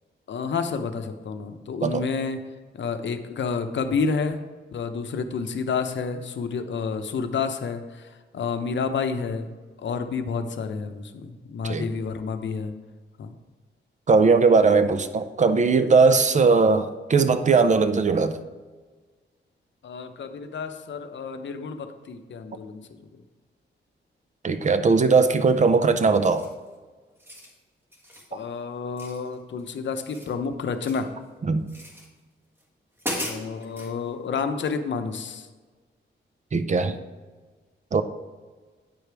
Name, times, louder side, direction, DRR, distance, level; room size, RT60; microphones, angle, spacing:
voice 1, 0.3-2.4 2.7-4.4 4.7-9.5 9.8-12.7 13.2-13.3 19.8-22.9 28.3-31.1 33.2-35.5, left 5 dB, 65° left, 8 dB, 0.7 m, -30 dB
voice 2, 14.1-18.4 24.4-26.4 31.4-31.7 36.5-37.0 37.9-38.0, right 4 dB, 35° right, 10 dB, 0.5 m, -19 dB
sound 1, 26.3-26.7 27.1-27.5 27.9-28.3 29.0-29.6 29.9-31.1 31.7-32.1 32.6-32.7 33.0-33.9, left 1 dB, 10° right, 1.6 m, -36 dB
9.1 x 5.0 x 4.6 m, 1.4 s
wide cardioid pair, 125°, 20 cm